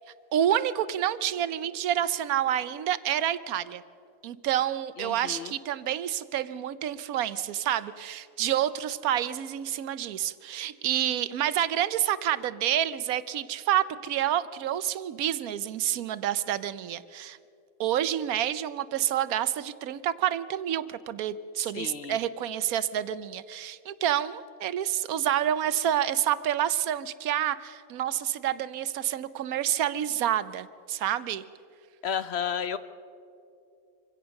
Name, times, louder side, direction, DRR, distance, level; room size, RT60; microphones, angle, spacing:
voice 1, 0.3-3.8 4.2-17.4 17.8-31.4, right 11 dB, 85° right, 16 dB, 1.2 m, -28 dB
voice 2, 5.0-5.5 21.7-22.2 32.0-32.8, left 8 dB, 55° left, 13 dB, 1.0 m, -32 dB
25.0 x 16.5 x 6.4 m, 2.5 s
omnidirectional pair, 1.5 m